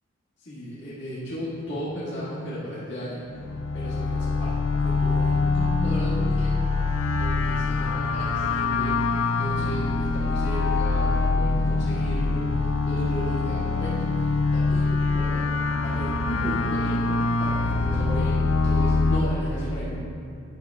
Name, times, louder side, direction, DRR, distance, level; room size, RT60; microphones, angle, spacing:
voice 1, 0.4-3.4 3.7-6.7 7.2-19.9, equal, 55° left, -10 dB, 1.8 m, -34 dB
sound 1, 3.3-19.2, left 3 dB, 75° left, 0.4 m, -24 dB
11.0 x 6.1 x 3.5 m, 2.5 s
head